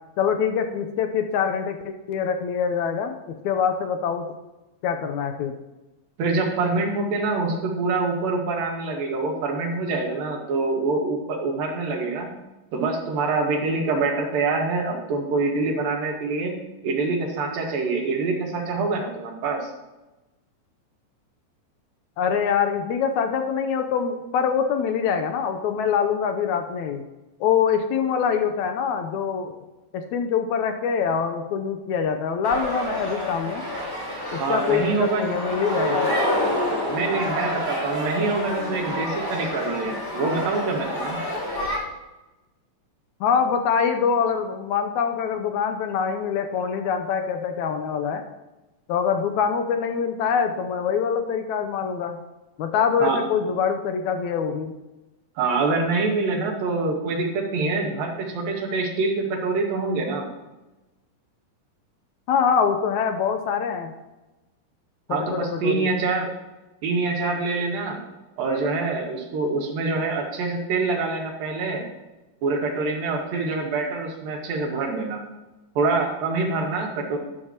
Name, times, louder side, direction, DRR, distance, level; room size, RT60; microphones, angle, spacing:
voice 1, 0.2-4.3 4.8-5.5 22.2-27.0 27.4-29.5 29.9-33.6 34.3-36.1 43.2-48.2 48.9-52.2 52.6-54.7 62.3-63.9 65.1-65.9, left 7 dB, 75° left, 6 dB, 1.8 m, -24 dB
voice 2, 6.2-12.3 12.7-16.5 16.8-19.7 34.4-35.3 36.9-41.2 53.0-53.2 55.4-60.3 65.1-66.3 66.8-68.0 68.4-71.9 72.4-75.2 75.8-77.2, right 3 dB, 85° right, 1 dB, 3.5 m, -25 dB
sound 1, 32.4-41.8, equal, 5° left, 2.6 m, -28 dB
12.0 x 11.5 x 2.9 m, 1.1 s
omnidirectional pair, 3.9 m